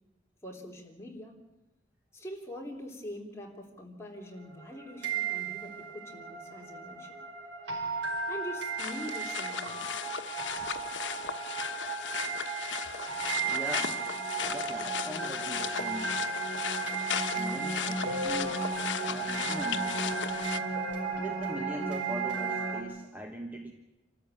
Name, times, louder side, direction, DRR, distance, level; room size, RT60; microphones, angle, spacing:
voice 1, 0.4-1.4 2.1-7.2 8.3-10.0, equal, 15° left, -1 dB, 3.4 m, -43 dB
sound 1, 4.2-22.8, right 4 dB, 85° right, 5.0 m, -34 dB
sound 2, 8.8-20.6, left 7 dB, 80° left, 1.1 m, -36 dB
voice 2, 13.5-14.0 14.5-16.3 17.3-18.7 19.1-20.1 21.2-23.7, right 1 dB, 10° right, 2 dB, 1.3 m, -41 dB
27.5 x 13.5 x 9.1 m, 0.99 s
head